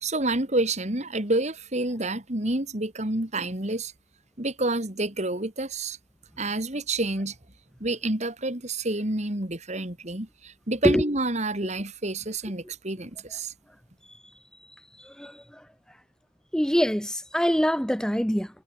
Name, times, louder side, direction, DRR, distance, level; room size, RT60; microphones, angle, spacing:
voice 1, 0.0-3.9 4.4-6.0 6.4-7.3 7.8-13.5, right 2 dB, 35° right, 2.6 m, -28 dB
voice 2, 16.5-18.5, equal, 5° left, 1.8 m, -24 dB
head